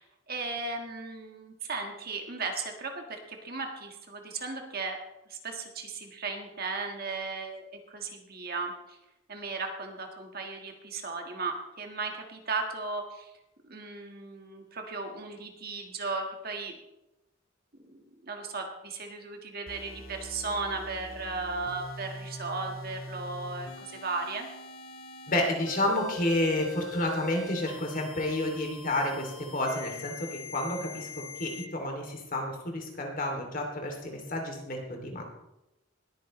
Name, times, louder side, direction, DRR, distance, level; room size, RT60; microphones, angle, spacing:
voice 1, 0.0-5.0 5.3-9.0 9.3-13.3 13.6-16.7 17.9-24.5, right 3 dB, 50° right, 3 dB, 1.6 m, -36 dB
sound 1, 19.7-31.7, left 2 dB, 85° left, 2.1 m, -43 dB
voice 2, 25.3-35.2, left 1 dB, 45° left, 2 dB, 2.7 m, -30 dB
20.0 x 9.3 x 3.2 m, 0.92 s
head